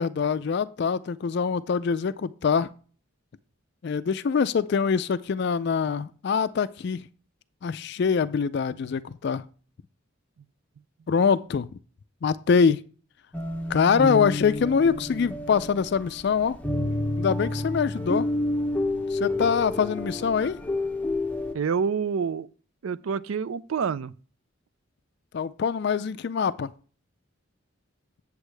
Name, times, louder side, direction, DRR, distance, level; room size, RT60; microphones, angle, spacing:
voice 1, 0.0-2.7 3.8-7.0 7.6-9.4 11.1-11.7 12.2-12.8 13.7-16.6 17.2-18.3 19.1-20.6 25.3-26.7, left 6 dB, 50° left, 0.3 m, -24 dB
sound 1, 13.3-21.5, left 1 dB, 5° left, 0.7 m, -29 dB
voice 2, 21.5-22.5 22.8-24.1, right 6 dB, 75° right, 0.4 m, -27 dB
8.2 x 8.1 x 3.3 m
head